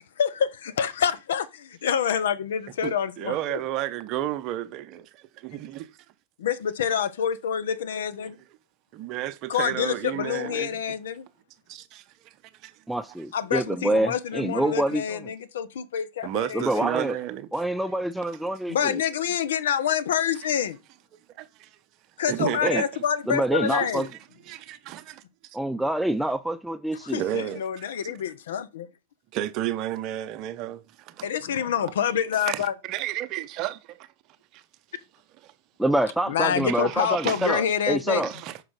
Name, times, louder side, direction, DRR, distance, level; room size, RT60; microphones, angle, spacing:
voice 1, 0.2-3.6 6.4-8.4 9.5-11.3 13.3-16.8 18.7-20.8 22.2-24.1 27.0-28.9 31.2-32.7 36.3-38.2, left 8 dB, 60° left, 0.7 m, -27 dB
voice 2, 2.8-5.9 8.2-8.3 8.9-10.8 11.7-12.3 12.6-12.7 16.2-17.5 21.4-21.7 22.3-23.0 23.6-24.1 24.5-25.2 27.1-28.1 29.3-31.3 32.3-34.1 34.5-34.6 35.4-35.5 36.7-37.6 38.2-38.6, right 13 dB, 40° right, 0.7 m, -32 dB
voice 3, 12.9-15.2 16.5-17.2 17.5-19.0 22.6-22.8 23.3-24.1 25.5-27.2 35.8-38.3, right 1 dB, 5° right, 0.3 m, -26 dB
6.1 x 4.8 x 3.7 m
figure-of-eight pair, 90°, 0 cm